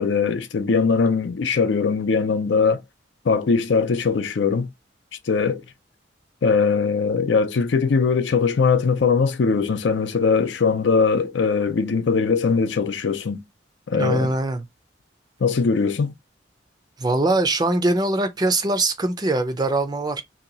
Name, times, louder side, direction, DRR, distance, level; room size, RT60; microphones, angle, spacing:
voice 1, 0.0-2.8 3.3-4.7 5.3-5.6 6.4-13.4 13.9-14.3 15.4-16.1, left 5 dB, 70° left, 0.5 m, -20 dB
voice 2, 13.9-14.6 17.0-20.2, right 2 dB, 20° right, 0.4 m, -22 dB
2.8 x 2.2 x 3.9 m
head